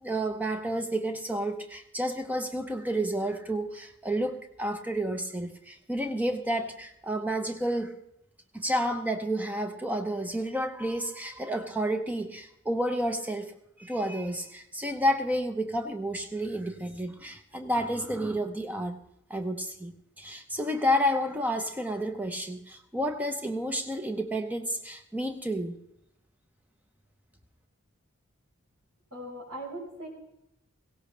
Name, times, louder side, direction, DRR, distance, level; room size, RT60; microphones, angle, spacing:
voice 1, 0.0-7.9 8.5-13.5 13.8-19.0 19.3-25.7, equal, 5° right, 6 dB, 0.8 m, -30 dB
voice 2, 29.1-30.1, right 1 dB, 90° right, -2 dB, 4.9 m, -39 dB
17.0 x 16.5 x 3.3 m, 0.78 s
head